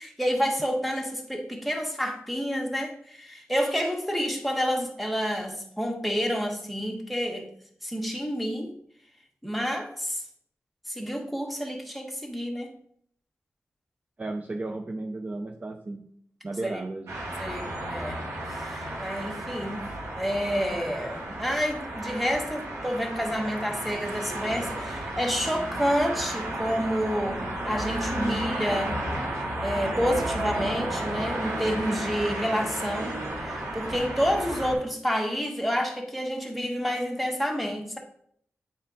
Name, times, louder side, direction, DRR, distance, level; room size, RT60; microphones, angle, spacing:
voice 1, 0.0-7.5 7.8-8.7 9.4-10.2 10.9-12.7 16.6-16.7 17.4-18.2 18.5-19.9 20.2-29.0 29.6-38.0, equal, ahead, 0 dB, 1.6 m, -29 dB
voice 2, 14.2-16.1 16.4-17.2 28.2-28.5, right 2 dB, 30° right, 5 dB, 0.5 m, -33 dB
sound 1, 17.1-34.7, right 1 dB, 85° right, 2.2 m, -33 dB
9.2 x 4.3 x 3.9 m, 0.65 s
wide cardioid pair, 80°, 5 cm